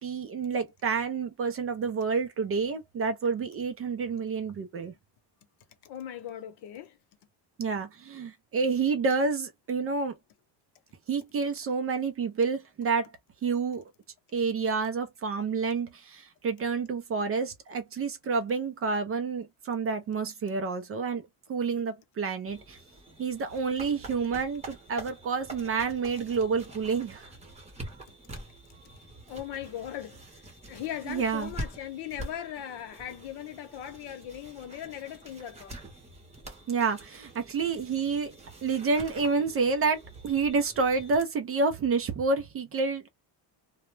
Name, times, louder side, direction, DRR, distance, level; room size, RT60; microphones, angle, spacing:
voice 1, 0.0-4.9 7.6-10.1 11.1-13.0 13.4-13.8 14.3-21.2 21.5-22.8 23.2-27.3 31.1-31.5 36.7-38.3 38.6-43.1, right 4 dB, 35° right, 0.4 m, -29 dB
voice 2, 5.8-7.0 29.3-30.2 30.7-35.8, left 11 dB, 60° left, 0.8 m, -39 dB
sound 1, 22.5-41.2, right 1 dB, 15° right, 0.8 m, -46 dB
2.1 x 2.1 x 3.1 m
cardioid pair, 145°, 44 cm